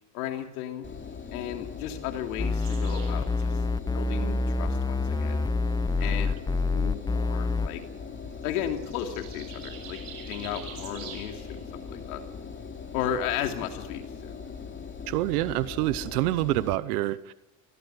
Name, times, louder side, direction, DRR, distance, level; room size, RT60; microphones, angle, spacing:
voice 1, 0.1-0.9 1.3-3.5 3.9-5.5 6.0-6.3 6.7-7.8 8.4-12.2 12.9-14.3, left 10 dB, 85° left, 5 dB, 3.1 m, -34 dB
Engine, 0.8-16.7, left 5 dB, 25° left, 3.2 m, -41 dB
sound 1, 2.4-7.7, left 3 dB, 10° left, 0.8 m, -27 dB
sound 2, 2.6-16.2, right 7 dB, 55° right, 7.0 m, -50 dB
voice 2, 15.1-17.3, right 17 dB, 85° right, 16 dB, 1.0 m, -27 dB
20.5 x 16.5 x 9.3 m, 0.93 s
supercardioid pair, 100°, 43 cm